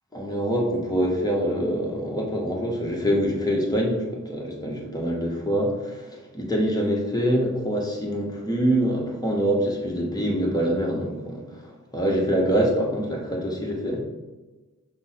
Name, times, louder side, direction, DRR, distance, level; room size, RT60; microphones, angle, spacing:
voice 1, 0.1-14.0, equal, 10° left, -2 dB, 1.1 m, -25 dB
5.5 x 2.1 x 4.2 m, 1.2 s
wide cardioid pair, 75°, 31 cm